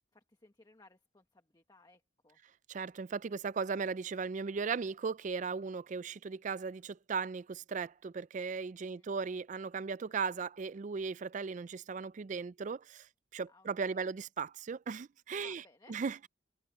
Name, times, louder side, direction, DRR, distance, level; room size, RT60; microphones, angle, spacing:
voice 1, 0.1-2.4 8.9-9.2 13.4-14.1 15.4-16.0, left 2 dB, 20° left, 1.4 m, -63 dB
voice 2, 2.7-13.1 13.3-15.6 15.9-16.3, right 5 dB, 40° right, 0.4 m, -37 dB
head